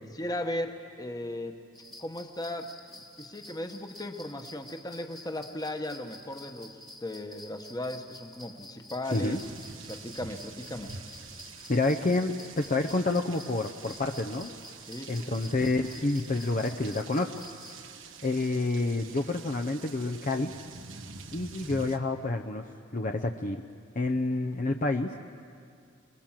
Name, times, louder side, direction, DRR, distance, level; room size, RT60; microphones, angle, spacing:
voice 1, 0.2-1.6 2.0-6.7 7.0-9.4 9.9-11.0 14.9-15.4, left 1 dB, 20° left, 6 dB, 1.3 m, -37 dB
sound 1, 1.7-17.8, left 1 dB, ahead, 1.5 m, -50 dB
sound 2, 9.0-22.0, right 4 dB, 90° right, 1.3 m, -46 dB
voice 2, 9.1-9.4 11.7-14.5 15.1-17.3 18.2-20.5 21.3-22.7 22.9-23.6 24.0-25.2, left 2 dB, 40° left, 5 dB, 0.7 m, -28 dB
27.0 x 21.5 x 7.5 m, 2.4 s
head